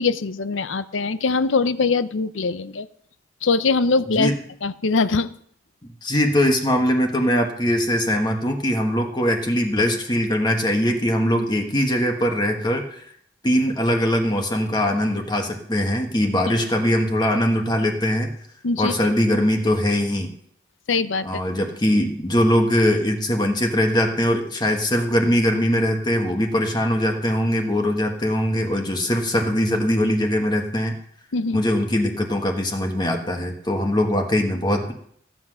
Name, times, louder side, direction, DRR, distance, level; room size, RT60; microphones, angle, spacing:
voice 1, 0.0-2.9 3.4-4.3 4.6-5.3 16.5-16.6 18.6-18.9 20.9-21.4 31.3-31.6, left 4 dB, 85° left, 14 dB, 0.7 m, -22 dB
voice 2, 6.0-13.0 13.4-18.3 18.8-20.3 21.2-30.9 31.5-34.9, equal, 20° left, 3 dB, 1.4 m, -21 dB
15.0 x 7.8 x 6.3 m, 0.65 s
head